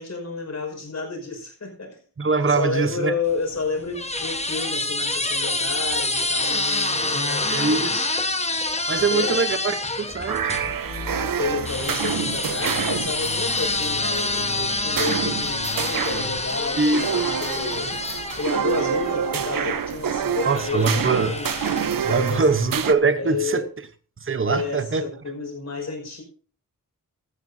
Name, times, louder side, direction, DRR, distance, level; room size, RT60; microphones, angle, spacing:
voice 1, 0.0-2.0 2.4-8.1 8.9-9.4 11.1-18.1 18.4-21.5 22.0-22.5 23.2-23.7 24.5-26.2, left 3 dB, 50° left, 5.5 m, -31 dB
voice 2, 2.2-3.1 7.5-7.9 8.9-10.7 16.8-17.0 20.4-21.4 22.0-23.6 24.2-25.0, right 4 dB, 40° right, 1.0 m, -22 dB
sound 1, 3.3-10.7 11.7-19.6 20.4-22.1, left 2 dB, 20° left, 1.2 m, -27 dB
sound 2, 10.3-22.9, right 7 dB, 85° right, 0.9 m, -28 dB
sound 3, 10.6-16.4, left 6 dB, 75° left, 1.2 m, -38 dB
16.5 x 12.5 x 2.8 m
wide cardioid pair, 120°, 33 cm